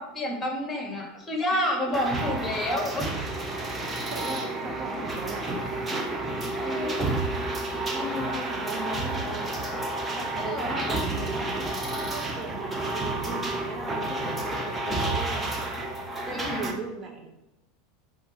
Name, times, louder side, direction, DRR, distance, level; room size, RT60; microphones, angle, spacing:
voice 1, 0.0-3.1 6.5-7.1 10.4-10.7 16.3-16.7, left 1 dB, 15° left, 2 dB, 2.1 m, -29 dB
sound 1, 1.9-16.7, right 2 dB, 15° right, 1.1 m, -30 dB
voice 2, 3.6-5.5 5.7-7.2 7.9-9.5 10.1-11.6 12.0-15.7 16.3-17.3, right 2 dB, 35° right, 2 dB, 1.7 m, -38 dB
9.5 x 3.9 x 4.8 m, 0.95 s
figure-of-eight pair, 80°, 0 cm